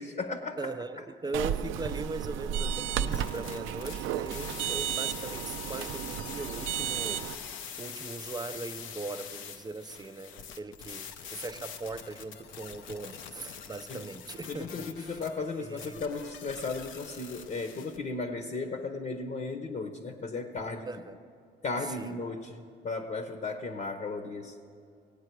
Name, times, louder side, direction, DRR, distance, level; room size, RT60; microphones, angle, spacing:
voice 1, 0.0-0.7 13.9-14.1 14.5-21.0 21.6-24.6, left 3 dB, 40° left, 5 dB, 0.9 m, -35 dB
voice 2, 0.6-7.3 7.5-15.2 15.6-16.1 20.9-21.2 21.8-22.2, right 3 dB, 20° right, 11 dB, 0.5 m, -40 dB
sound 1, 1.3-7.4, right 10 dB, 85° right, 0.4 m, -33 dB
sound 2, 3.1-18.0, left 7 dB, 90° left, 0.7 m, -44 dB
17.5 x 8.5 x 4.6 m, 2.4 s
cardioid pair, 90°, 20 cm